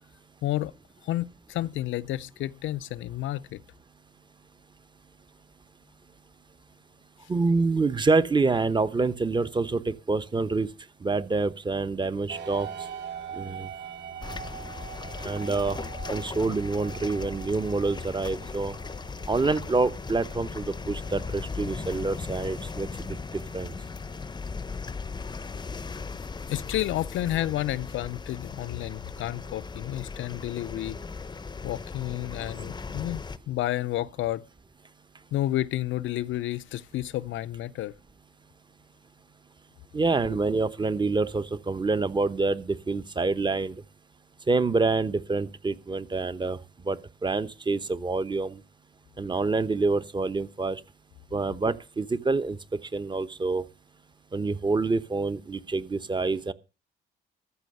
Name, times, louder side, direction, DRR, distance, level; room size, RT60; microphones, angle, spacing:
voice 1, 0.4-0.7 1.0-3.6 26.5-31.0 31.6-33.2 33.5-34.4 35.3-37.9, left 14 dB, 75° left, 0.5 m, -30 dB
voice 2, 7.3-10.7 11.0-12.7 13.3-13.7 15.2-15.8 16.1-18.7 19.3-23.7 39.9-43.8 44.5-46.6 46.9-48.6 49.2-50.8 51.3-52.6 52.9-53.6 54.3-56.5, right 3 dB, 25° right, 0.9 m, -27 dB
sound 1, 12.3-25.9, right 8 dB, 60° right, 2.3 m, -44 dB
sound 2, 14.2-33.4, left 4 dB, 20° left, 0.6 m, -38 dB
14.0 x 6.2 x 7.8 m
cardioid pair, 90°, 20 cm